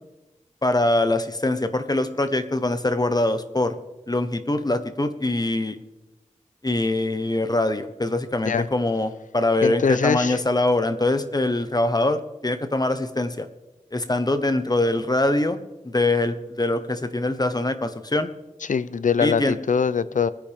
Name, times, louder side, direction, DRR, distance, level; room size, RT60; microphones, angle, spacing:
voice 1, 0.6-3.7 4.1-5.8 6.6-13.5 13.9-18.3 19.2-19.5, left 2 dB, 30° left, 10 dB, 1.2 m, -23 dB
voice 2, 9.6-10.4 18.7-20.3, left 6 dB, 75° left, 16 dB, 0.6 m, -22 dB
21.0 x 10.0 x 3.6 m, 1.1 s
cardioid pair, 45°, 13 cm